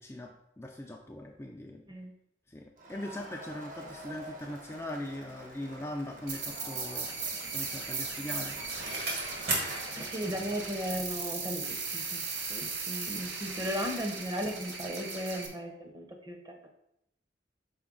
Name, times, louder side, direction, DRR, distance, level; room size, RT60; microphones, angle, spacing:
voice 1, 0.0-1.8 2.5-7.1 7.5-8.6, left 1 dB, 15° left, 0 dB, 0.4 m, -40 dB
Crowd, 2.8-10.7, right 1 dB, 45° right, 0.9 m, -48 dB
sound 1, 6.3-15.5, right 4 dB, 85° right, 1.0 m, -37 dB
Bicycle, 7.1-12.0 12.4-12.5, right 2 dB, 60° right, 1.5 m, -38 dB
voice 2, 9.9-16.7, equal, 20° right, 3 dB, 0.7 m, -36 dB
6.0 x 4.3 x 3.8 m, 0.79 s
head